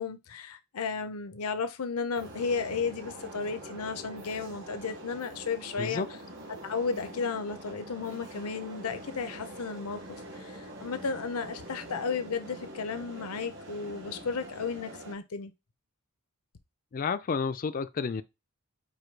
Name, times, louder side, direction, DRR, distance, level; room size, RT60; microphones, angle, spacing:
voice 1, 0.0-6.0 6.6-10.0 10.3-15.5, left 5 dB, 80° left, 0.7 m, -34 dB
sound 1, 2.1-15.1, right 1 dB, 55° right, 1.4 m, -44 dB
voice 2, 16.9-18.2, left 5 dB, 40° left, 0.4 m, -30 dB
4.9 x 2.3 x 4.5 m
head